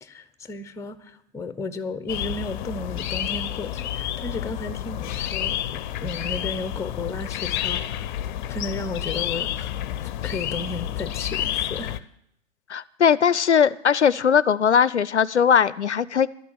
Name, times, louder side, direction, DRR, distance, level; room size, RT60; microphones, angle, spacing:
voice 1, 0.0-8.1 8.5-9.7 10.2-12.0, left 2 dB, 10° left, 13 dB, 0.8 m, -34 dB
sound 1, 2.1-12.0, left 11 dB, 45° left, 0.6 m, -30 dB
voice 2, 12.7-16.3, left 7 dB, 85° left, 19 dB, 0.5 m, -19 dB
12.0 x 7.0 x 8.8 m, 0.73 s
figure-of-eight pair, 95°, 34 cm